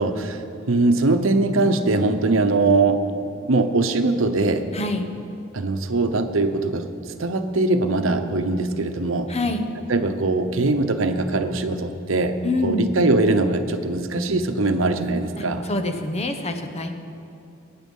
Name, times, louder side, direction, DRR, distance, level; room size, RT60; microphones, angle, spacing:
voice 1, 0.0-3.0 3.5-4.7 5.5-9.3 9.9-12.4 12.6-15.6, right 2 dB, 80° right, 8 dB, 0.9 m, -21 dB
voice 2, 4.7-5.1 9.3-9.7 12.4-12.8 15.4-16.9, left 2 dB, 30° left, 6 dB, 1.0 m, -26 dB
21.0 x 9.1 x 5.4 m, 2.9 s
head